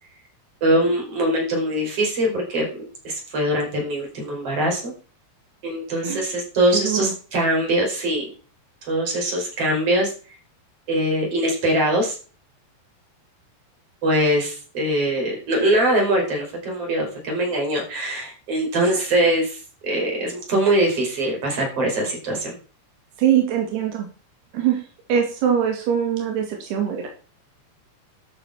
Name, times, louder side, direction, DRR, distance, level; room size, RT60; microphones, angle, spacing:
voice 1, 0.6-4.9 5.6-8.2 8.9-10.1 10.9-12.2 14.0-22.6, right 1 dB, 35° right, 0 dB, 5.8 m, -22 dB
voice 2, 6.7-7.1 23.2-24.1 24.5-24.8 25.1-27.1, right 9 dB, 85° right, 3 dB, 4.0 m, -22 dB
13.0 x 7.1 x 6.0 m, 0.37 s
omnidirectional pair, 4.6 m